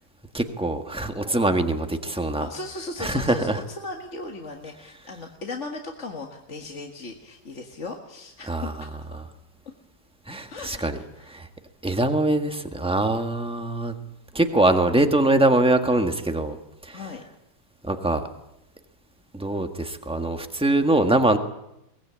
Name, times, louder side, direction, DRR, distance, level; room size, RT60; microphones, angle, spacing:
voice 1, 0.3-2.5 3.0-3.6 8.5-8.7 10.3-11.0 11.3-11.5 11.8-13.9 14.3-16.6 16.8-17.0 17.8-18.2 19.3-21.4, right 2 dB, 5° right, 6 dB, 1.2 m, -23 dB
voice 2, 2.4-9.2 10.5-11.3 16.9-17.2, left 3 dB, 35° left, 2 dB, 1.9 m, -37 dB
22.5 x 20.0 x 8.8 m, 0.86 s
omnidirectional pair, 2.3 m